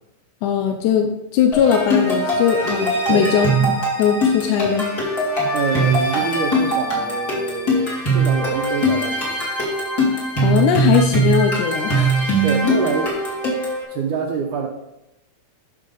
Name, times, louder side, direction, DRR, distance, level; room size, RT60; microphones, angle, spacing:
voice 1, 0.4-4.9 10.4-12.2 12.6-12.7, left 8 dB, 75° left, 4 dB, 1.9 m, -19 dB
sound 1, 1.5-13.8, right 1 dB, 30° left, 2.8 m, -21 dB
voice 2, 3.1-3.5 5.5-9.4 12.4-13.2 13.9-14.7, right 6 dB, 75° right, 0 dB, 2.1 m, -26 dB
13.0 x 5.7 x 3.9 m, 0.95 s
omnidirectional pair, 4.1 m